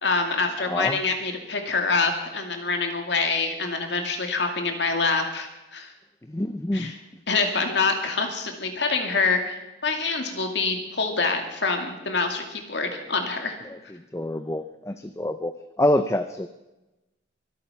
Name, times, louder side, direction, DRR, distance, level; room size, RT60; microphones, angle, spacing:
voice 1, 0.0-5.9 6.7-7.0 7.3-13.6, left 4 dB, 70° left, 4 dB, 2.4 m, -26 dB
voice 2, 0.7-1.0 6.3-6.9 14.1-16.5, left 1 dB, 15° left, 9 dB, 0.5 m, -26 dB
24.0 x 8.7 x 5.8 m, 1.0 s
head